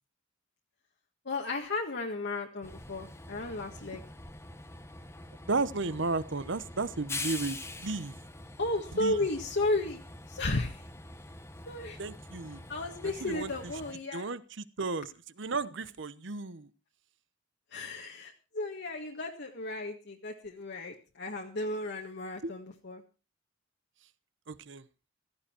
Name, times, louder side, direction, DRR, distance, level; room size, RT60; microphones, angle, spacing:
voice 1, 1.2-4.0 8.6-10.0 10.3-10.8 11.7-12.0 12.7-14.3 17.7-23.0, left 2 dB, 60° left, 1 dB, 1.7 m, -34 dB
Train, 2.6-13.9, left 2 dB, 15° left, 1.2 m, -44 dB
voice 2, 5.5-8.1 8.9-9.1 12.0-12.6 13.0-13.7 14.1-15.1 15.4-16.7 22.4-22.5 24.5-24.8, right 3 dB, 65° right, 16 dB, 1.0 m, -34 dB
16.0 x 14.0 x 4.5 m, 0.33 s
head